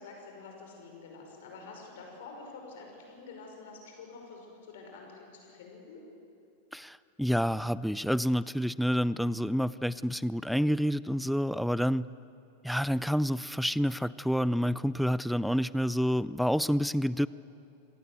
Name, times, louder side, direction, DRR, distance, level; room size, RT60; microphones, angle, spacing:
voice 1, 0.0-6.0, left 4 dB, 55° left, 1 dB, 5.8 m, -48 dB
voice 2, 6.7-12.1 12.6-17.3, equal, ahead, 18 dB, 0.4 m, -28 dB
26.5 x 18.0 x 8.1 m, 2.8 s
figure-of-eight pair, 90°, 0 cm